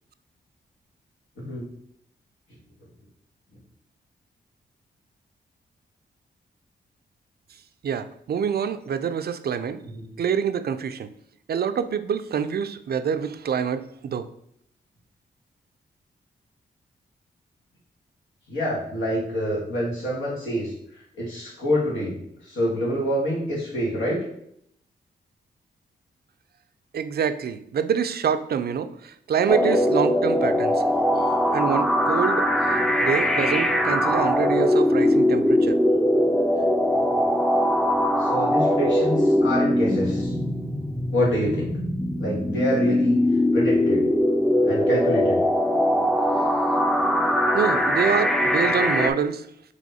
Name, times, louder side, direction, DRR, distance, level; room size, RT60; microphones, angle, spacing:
voice 1, 7.8-9.8 10.2-11.1 11.5-14.3 26.9-30.8 31.5-35.8 46.4-46.5 47.5-49.7, right 7 dB, 55° right, 10 dB, 0.4 m, -26 dB
voice 2, 18.5-20.7 21.2-22.1 22.5-24.2 38.2-40.3 41.1-41.7 42.2-43.2 43.5-44.0 44.6-45.4, equal, 80° left, -4 dB, 1.5 m, -26 dB
sound 1, 29.5-49.1, left 1 dB, ahead, 0.5 m, -21 dB
3.5 x 2.9 x 4.1 m, 0.72 s
cardioid pair, 50°, 19 cm